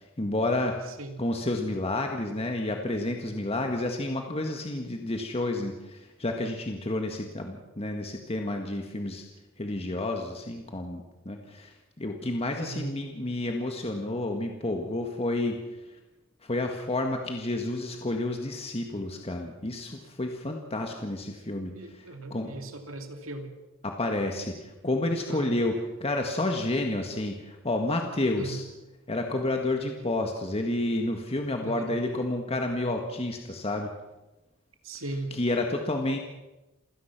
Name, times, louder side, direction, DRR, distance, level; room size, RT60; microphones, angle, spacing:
voice 1, 0.0-0.8 1.2-9.2 9.6-16.0 16.4-22.5 23.8-28.6 29.1-33.9 35.3-36.2, left 2 dB, 30° left, 3 dB, 1.8 m, -30 dB
voice 2, 12.6-12.9 21.8-23.5 25.3-25.6 28.3-28.6 31.6-32.0 34.8-35.3, right 2 dB, 80° right, 6 dB, 2.6 m, -38 dB
28.0 x 17.0 x 6.0 m, 1.0 s
head